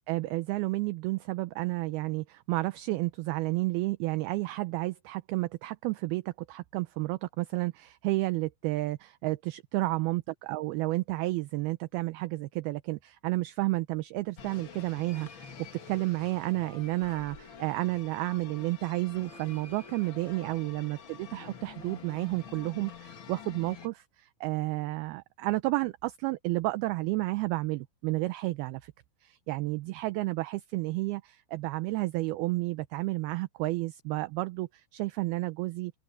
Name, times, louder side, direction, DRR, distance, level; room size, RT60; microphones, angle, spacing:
voice 1, 0.1-15.5 15.9-28.9 29.2-35.9, right 20 dB, 80° right, 2.3 m, -31 dB
sound 1, 14.4-23.9, left 7 dB, 60° left, 1.2 m, -48 dB
omnidirectional pair, 5.0 m